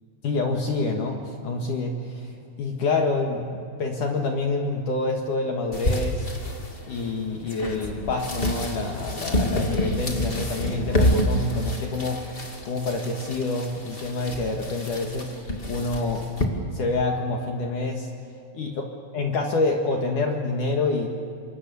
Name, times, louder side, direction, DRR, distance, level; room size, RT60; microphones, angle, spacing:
voice 1, 0.2-2.3 2.6-6.3 6.9-12.2 12.6-15.3 15.7-16.3 16.7-18.1 18.6-18.8 19.1-21.1, left 3 dB, 55° left, 2 dB, 2.6 m, -27 dB
sound 1, 5.7-16.4, left 1 dB, 35° left, 0.8 m, -28 dB
27.5 x 26.0 x 7.0 m, 2.4 s
omnidirectional pair, 5.3 m